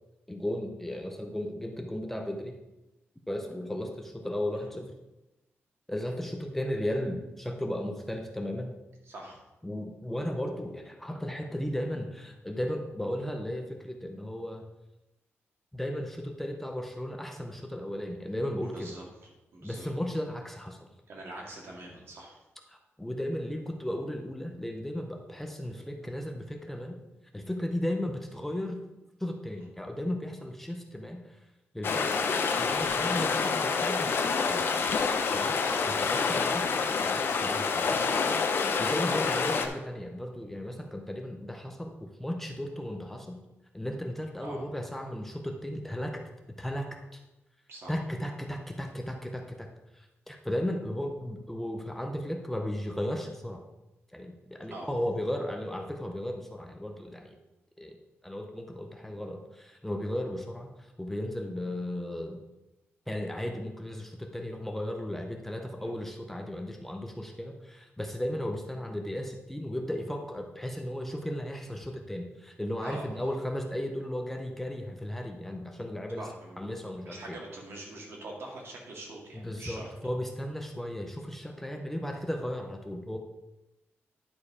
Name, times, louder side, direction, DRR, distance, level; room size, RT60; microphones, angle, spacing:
voice 1, 0.3-2.5 3.3-4.9 5.9-8.8 9.6-14.6 15.7-18.9 19.6-20.9 22.7-27.0 27.3-28.8 29.2-31.4 31.7-32.3 32.5-34.6 35.3-36.7 37.0-38.0 38.8-43.4 43.7-46.2 46.6-47.2 47.9-49.7 49.9-53.6 54.1-57.3 57.8-58.0 58.2-62.4 63.1-76.3 76.6-77.4 79.3-83.2, left 1 dB, 5° left, 3 dB, 0.6 m, -35 dB
voice 2, 9.0-9.4 18.6-19.1 19.5-19.9 21.1-22.4 33.0-33.2 35.9-36.5 40.7-40.9 44.4-44.6 47.7-48.0 54.7-54.9 65.8-65.9 72.8-73.4 76.2-79.9, right 2 dB, 65° right, -1 dB, 2.1 m, -44 dB
sound 1, 31.8-39.7, left 5 dB, 55° left, 0.8 m, -27 dB
10.5 x 4.7 x 4.8 m, 0.98 s
wide cardioid pair, 165°, 5 cm